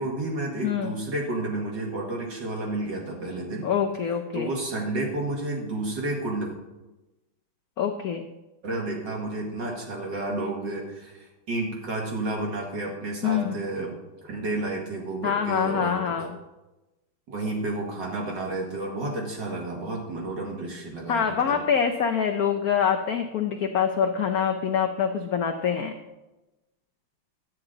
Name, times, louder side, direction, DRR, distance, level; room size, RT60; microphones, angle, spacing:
voice 1, 0.0-3.7 4.3-6.5 8.6-14.0 14.2-16.3 17.3-21.6, right 2 dB, 55° right, -2 dB, 2.6 m, -31 dB
voice 2, 0.6-0.9 3.6-4.5 7.8-8.3 13.2-13.6 15.2-16.3 21.1-25.9, left 7 dB, 75° left, 5 dB, 0.8 m, -25 dB
10.5 x 8.8 x 3.9 m, 1.0 s
omnidirectional pair, 2.3 m